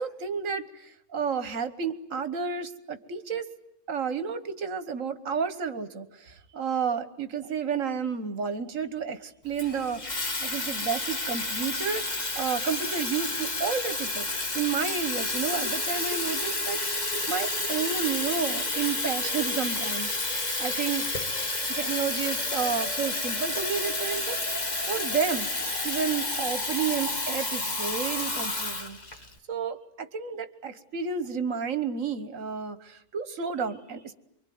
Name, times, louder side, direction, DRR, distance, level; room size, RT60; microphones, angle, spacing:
voice 1, 0.0-3.5 3.9-10.0 10.4-14.3 14.5-21.1 21.7-25.5 25.8-29.0 29.5-34.1, right 6 dB, 75° right, 12 dB, 1.7 m, -31 dB
Water tap faucet / Fill (with liquid), 9.6-29.3, left 2 dB, 30° left, 1.9 m, -30 dB
24.5 x 24.5 x 9.4 m, 0.77 s
omnidirectional pair, 1.4 m